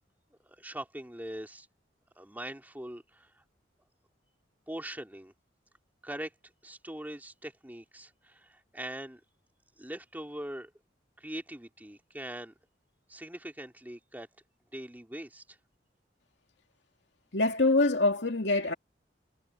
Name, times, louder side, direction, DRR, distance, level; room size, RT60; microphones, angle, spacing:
voice 1, 0.4-1.7 2.2-3.4 4.7-5.3 6.0-6.3 6.6-9.2 9.8-10.7 11.2-12.5 13.1-14.3 14.7-15.6, right 1 dB, 10° right, 2.6 m, -42 dB
voice 2, 17.3-18.7, left 2 dB, 75° left, 2.5 m, -25 dB
head